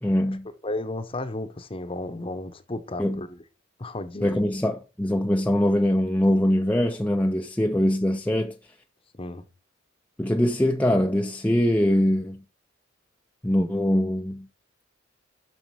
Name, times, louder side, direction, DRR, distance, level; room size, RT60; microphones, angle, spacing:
voice 1, 0.0-0.5 3.0-3.2 4.2-8.6 10.2-12.4 13.4-14.5, left 1 dB, 5° left, 0.4 m, -23 dB
voice 2, 0.6-3.4 3.8-4.4 9.2-9.4, left 2 dB, 25° left, 0.8 m, -33 dB
7.3 x 6.2 x 4.7 m
head